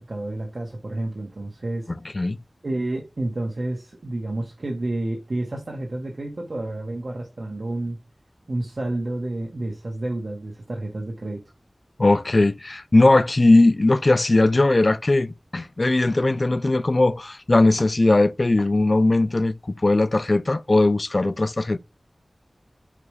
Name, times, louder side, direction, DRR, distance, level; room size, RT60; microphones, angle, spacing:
voice 1, 0.0-1.9 2.6-8.0 8.5-11.4, right 2 dB, 65° right, 1.5 m, -30 dB
voice 2, 1.9-2.4 12.0-21.8, left 2 dB, 45° left, 0.4 m, -19 dB
5.0 x 4.7 x 4.8 m
wide cardioid pair, 70°, 0 cm